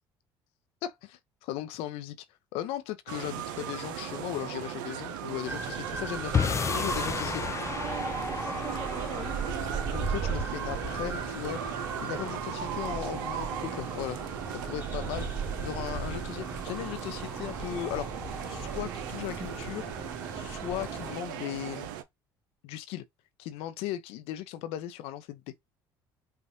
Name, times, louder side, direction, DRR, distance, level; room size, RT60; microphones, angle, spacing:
voice 1, 0.8-2.3 2.5-7.4 9.9-11.6 12.0-14.2 14.6-15.3 15.6-18.1 18.5-19.9 20.4-21.9 22.6-23.0 23.4-25.4, left 13 dB, 75° left, 0.6 m, -37 dB
sound 1, 3.1-22.0, right 10 dB, 85° right, 0.6 m, -38 dB
sound 2, 5.5-21.2, right 3 dB, 20° right, 1.8 m, -37 dB
sound 3, 6.3-12.7, left 7 dB, 30° left, 0.4 m, -34 dB
voice 2, 7.7-9.9, right 6 dB, 35° right, 1.4 m, -43 dB
5.7 x 2.5 x 2.7 m
hypercardioid pair, 70°, 10 cm